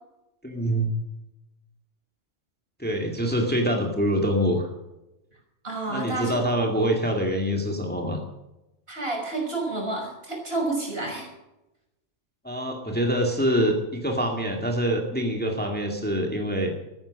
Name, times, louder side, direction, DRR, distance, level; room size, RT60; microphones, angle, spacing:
voice 1, 0.4-0.9 2.8-4.7 5.9-8.2 12.4-16.7, equal, 10° left, 1 dB, 2.1 m, -25 dB
voice 2, 5.6-6.4 8.9-11.3, right 2 dB, 50° right, -1 dB, 6.3 m, -29 dB
14.0 x 13.5 x 6.4 m, 0.96 s
omnidirectional pair, 1.3 m